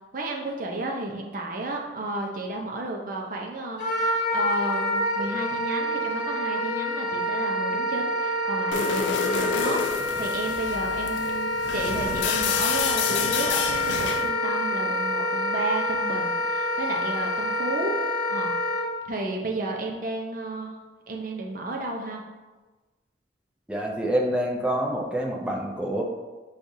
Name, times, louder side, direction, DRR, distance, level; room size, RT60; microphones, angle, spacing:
voice 1, 0.1-17.9 18.3-18.5 19.0-20.7 21.1-22.2, right 2 dB, 50° right, 0 dB, 0.6 m, -32 dB
Wind instrument woodwind instrument, 3.8-18.9, left 1 dB, 45° left, 1.3 m, -27 dB
sound 1, 8.7-14.3, left 5 dB, 90° left, 0.4 m, -29 dB
voice 2, 23.7-26.0, right 1 dB, 5° right, -1 dB, 0.5 m, -27 dB
6.3 x 2.4 x 2.7 m, 1.2 s
head